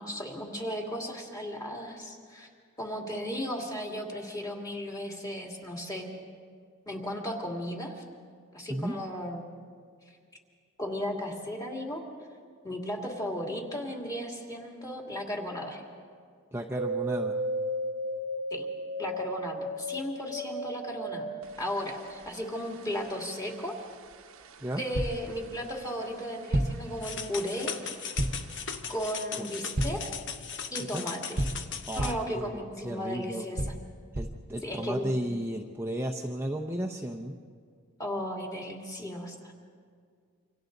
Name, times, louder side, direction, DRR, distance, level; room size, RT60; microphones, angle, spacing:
voice 1, 0.0-2.5 2.8-6.1 6.9-8.0 8.5-9.5 10.8-12.0 12.6-15.8 18.5-18.6 19.0-21.3 21.6-23.8 24.8-27.8 28.9-30.0 30.7-31.5 32.0-33.7 34.6-35.1 38.0-39.6, equal, 15° left, 0 dB, 2.5 m, -35 dB
voice 2, 16.5-17.3 24.6-24.8 29.4-29.7 30.9-31.0 31.9-33.4 34.1-37.4, right 1 dB, 10° right, 0 dB, 0.8 m, -34 dB
sound 1, 16.8-26.2 26.4-27.3 27.6-28.6 29.0-29.1, right 1 dB, 65° right, 1.0 m, -36 dB
sound 2, 24.9-25.3 26.5-26.9 28.2-28.5 29.8-30.1 31.4-32.3 33.6-34.5, right 1 dB, 45° right, 1.1 m, -30 dB
sound 3, 27.0-32.1, left 7 dB, 55° left, 1.1 m, -38 dB
28.5 x 26.0 x 4.0 m, 2.1 s
head